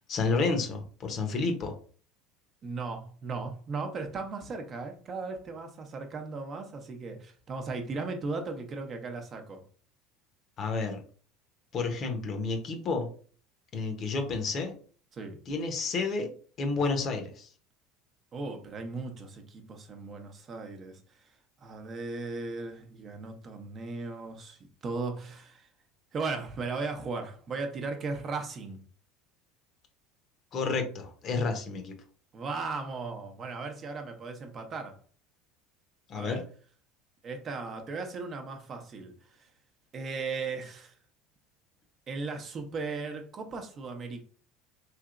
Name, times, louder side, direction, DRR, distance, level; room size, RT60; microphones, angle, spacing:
voice 1, 0.1-1.7 10.6-11.0 11.7-13.1 13.7-14.7 15.5-16.3 16.6-17.5 30.5-32.0 36.1-36.4, left 4 dB, 45° left, 0.8 m, -30 dB
voice 2, 2.6-9.6 15.1-15.4 18.3-21.0 21.6-25.7 26.1-28.8 32.3-35.0 36.1-36.4 37.2-39.5 39.9-40.9 42.1-44.2, right 4 dB, 40° right, 0.7 m, -37 dB
3.2 x 2.8 x 2.5 m
supercardioid pair, 100°, 0 cm